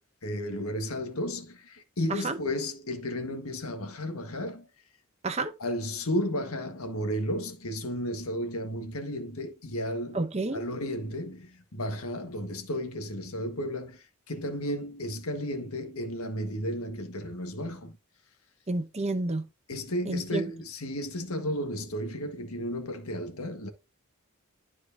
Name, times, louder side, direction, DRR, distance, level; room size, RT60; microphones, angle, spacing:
voice 1, 0.2-4.7 5.6-10.2 10.5-18.0 19.7-23.7, equal, 75° left, 1.7 m, -33 dB
voice 2, 10.1-10.6 18.7-19.4 20.1-20.4, right 2 dB, 30° right, 0.8 m, -29 dB
12.0 x 4.8 x 2.8 m
head